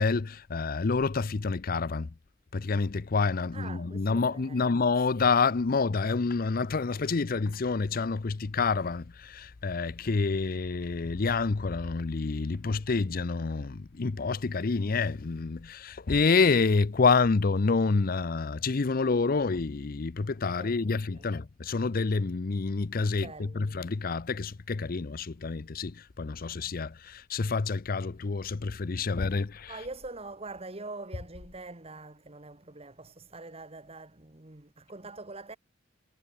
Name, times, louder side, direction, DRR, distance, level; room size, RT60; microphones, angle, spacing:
voice 1, 0.0-2.1 2.5-29.7, left 4 dB, 50° left, 0.6 m, -28 dB
voice 2, 3.5-4.7 20.5-21.3 23.1-23.7 29.7-35.6, right 3 dB, 30° right, 1.8 m, -44 dB
head